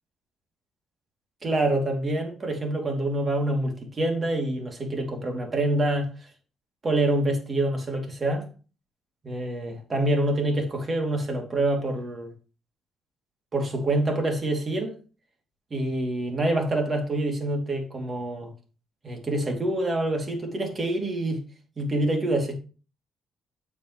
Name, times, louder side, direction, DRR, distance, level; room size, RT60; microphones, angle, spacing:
voice 1, 1.4-6.1 6.8-8.5 9.2-12.3 13.5-15.0 15.7-18.5 19.0-21.4 21.8-22.6, right 1 dB, 35° right, 2.7 m, -26 dB
9.0 x 6.9 x 3.1 m
cardioid pair, 90°, 0 cm